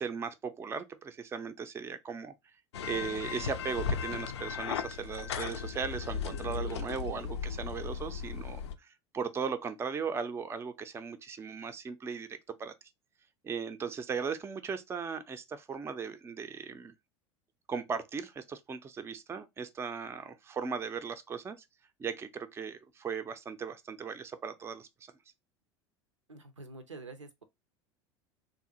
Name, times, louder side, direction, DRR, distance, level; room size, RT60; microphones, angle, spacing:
voice 1, 0.0-2.3 2.8-12.7 13.4-16.9 17.7-21.7 22.0-24.9, right 6 dB, 15° right, 0.4 m, -37 dB
sound 1, 2.7-8.7, left 6 dB, 65° left, 0.4 m, -36 dB
voice 2, 26.3-27.4, right 3 dB, 80° right, 0.6 m, -47 dB
3.5 x 2.5 x 2.7 m
figure-of-eight pair, 75°, 15 cm